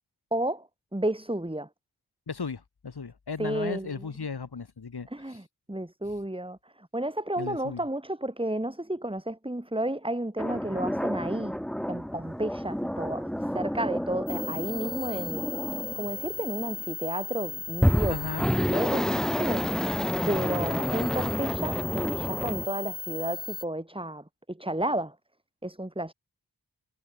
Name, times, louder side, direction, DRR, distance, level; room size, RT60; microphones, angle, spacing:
voice 1, 0.3-0.6 0.9-1.7 3.4-3.9 5.1-5.4 5.7-6.6 6.9-11.6 11.9-13.3 13.5-15.5 16.0-18.3 18.6-25.1 25.6-26.1, right 1 dB, 15° right, 4.7 m, -32 dB
voice 2, 2.3-5.4 7.4-7.8 18.1-18.5, left 5 dB, 90° left, 3.8 m, -36 dB
sound 1, 10.4-16.7 17.7-22.7, equal, ahead, 0.7 m, -30 dB
sound 2, 14.3-23.6, left 3 dB, 25° left, 1.2 m, -37 dB
wide cardioid pair, 55°, 38 cm